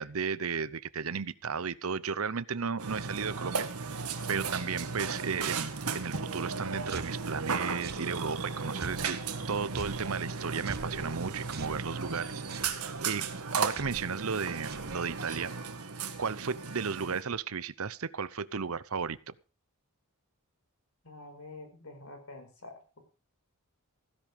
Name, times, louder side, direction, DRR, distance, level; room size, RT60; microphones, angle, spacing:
voice 1, 0.0-3.7 4.0-9.2 9.5-13.2 13.5-15.5 16.2-19.3, right 5 dB, 70° right, 0.8 m, -34 dB
Burping eructation, 2.8-17.2, right 5 dB, 85° right, 1.9 m, -36 dB
sound 1, 6.6-15.5, right 3 dB, 45° right, 1.3 m, -48 dB
voice 2, 21.0-22.8, left 2 dB, 70° left, 5.1 m, -47 dB
16.0 x 10.5 x 5.2 m
head